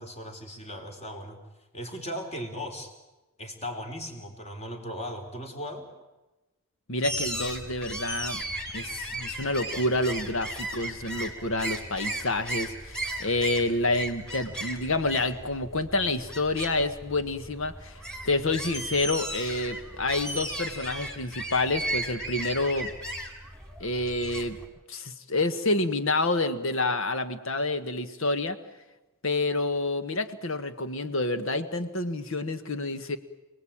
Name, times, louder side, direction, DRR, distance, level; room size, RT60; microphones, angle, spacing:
voice 1, 0.0-1.4 1.7-2.9 3.4-5.9, equal, 30° left, 4 dB, 3.8 m, -37 dB
voice 2, 6.9-8.4 8.7-18.0 18.2-22.9 23.8-24.6 24.9-28.6 29.2-33.2, left 2 dB, 65° left, 10 dB, 1.6 m, -28 dB
sound 1, 7.0-24.7, right 1 dB, 5° left, 3.6 m, -36 dB
28.5 x 19.0 x 8.8 m, 1.1 s
head